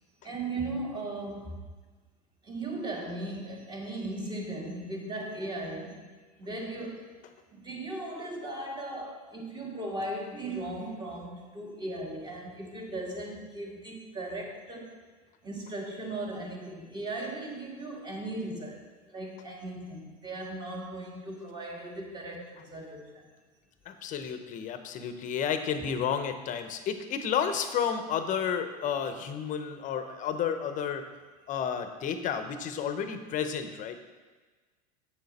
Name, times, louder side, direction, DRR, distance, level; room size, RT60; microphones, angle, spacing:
voice 1, 0.2-1.6 2.4-6.1 6.4-7.2 7.5-15.0 15.4-23.3, right 2 dB, 20° right, -1 dB, 2.0 m, -37 dB
voice 2, 23.9-31.1 31.5-34.0, left 7 dB, 40° left, 8 dB, 0.8 m, -31 dB
7.6 x 6.4 x 4.3 m, 1.3 s
hypercardioid pair, 105°, 21 cm